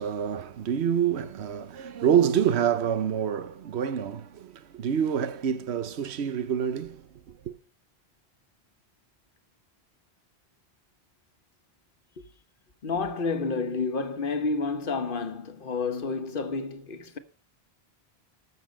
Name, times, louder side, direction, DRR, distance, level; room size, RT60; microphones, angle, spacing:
voice 1, 0.0-7.5, right 8 dB, 80° right, 1.1 m, -27 dB
voice 2, 12.8-17.2, left 4 dB, 55° left, 1.2 m, -30 dB
13.5 x 6.8 x 5.1 m
omnidirectional pair, 1.1 m